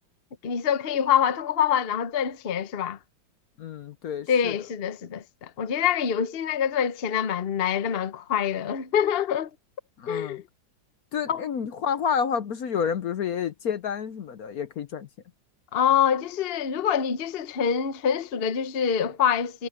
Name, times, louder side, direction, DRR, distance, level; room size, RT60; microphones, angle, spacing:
voice 1, 0.4-3.0 4.3-9.5 10.1-10.4 11.3-11.4 15.7-19.7, left 8 dB, 45° left, 0.8 m, -25 dB
voice 2, 3.6-4.5 10.0-10.4 11.1-15.1, left 7 dB, 60° left, 1.1 m, -29 dB
omnidirectional pair, 2.1 m